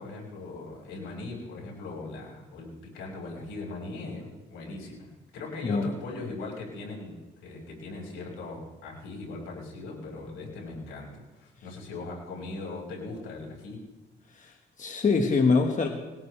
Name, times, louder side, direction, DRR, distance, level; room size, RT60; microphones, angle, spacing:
voice 1, 0.0-13.8, left 3 dB, 85° left, -2 dB, 5.9 m, -39 dB
voice 2, 14.3-15.9, left 4 dB, 40° left, 3 dB, 1.6 m, -24 dB
21.0 x 17.5 x 3.4 m, 1.1 s
cardioid pair, 90°, 20 cm